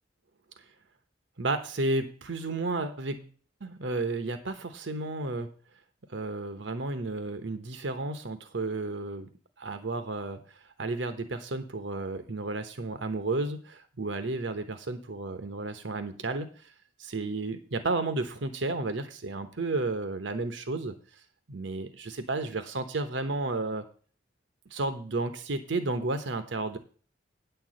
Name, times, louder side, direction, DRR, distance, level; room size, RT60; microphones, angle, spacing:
voice 1, 1.4-3.3 3.6-5.5 6.1-9.3 9.6-10.4 10.8-16.7 17.0-21.0 21.5-23.8 24.7-26.8, right 2 dB, 75° right, 9 dB, 0.9 m, -32 dB
9.3 x 4.6 x 7.6 m, 0.42 s
head